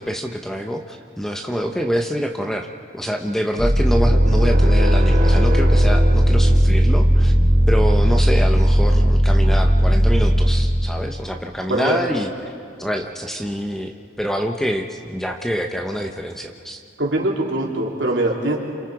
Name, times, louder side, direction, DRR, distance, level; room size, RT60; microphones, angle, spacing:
voice 1, 0.0-2.7 2.9-7.3 7.7-12.3 12.8-16.8, equal, ahead, 4 dB, 0.8 m, -26 dB
sound 1, 3.6-11.0, equal, 40° right, 3.0 m, -16 dB
voice 2, 11.7-12.0 17.0-18.6, right 1 dB, 75° right, -1 dB, 3.3 m, -22 dB
29.0 x 27.0 x 4.8 m, 2.3 s
head